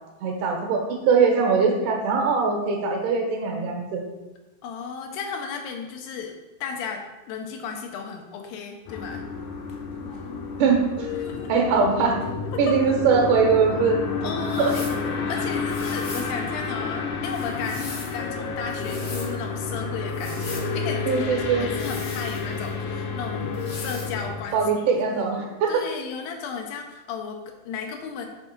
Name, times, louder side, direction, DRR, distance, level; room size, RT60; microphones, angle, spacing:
voice 1, 0.2-4.1 10.6-11.1 11.5-12.2 12.6-14.0 14.6-14.7 21.1-21.7 24.5-25.8, right 5 dB, 70° right, 1 dB, 2.5 m, -21 dB
voice 2, 4.6-6.3 6.6-9.3 11.1-11.5 12.7-12.8 14.2-15.0 15.3-25.3 25.7-28.3, left 6 dB, 85° left, 3 dB, 2.6 m, -34 dB
sound 1, 8.9-24.4, left 4 dB, 70° left, 2.1 m, -30 dB
sound 2, 14.4-15.0 15.7-16.3 17.3-18.2 18.7-19.3 20.1-20.7 21.7-22.7 23.5-24.1, left 2 dB, 55° left, 1.0 m, -40 dB
6.6 x 3.6 x 5.8 m, 1.1 s
omnidirectional pair, 4.0 m